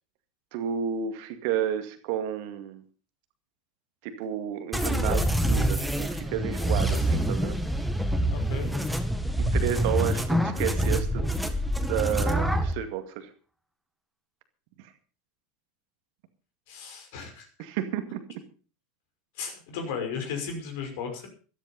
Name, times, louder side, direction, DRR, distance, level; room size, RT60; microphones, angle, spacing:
voice 1, 0.5-2.8 4.0-7.5 9.5-11.2 11.8-13.3 17.6-18.2, right 9 dB, 55° right, 8 dB, 2.2 m, -31 dB
sound 1, 4.7-12.7, right 1 dB, ahead, 2.0 m, -26 dB
voice 2, 8.3-8.9 16.7-17.5 19.4-21.3, left 6 dB, 55° left, 4 dB, 5.8 m, -35 dB
14.0 x 13.5 x 5.4 m, 0.38 s
figure-of-eight pair, 80°, 0 cm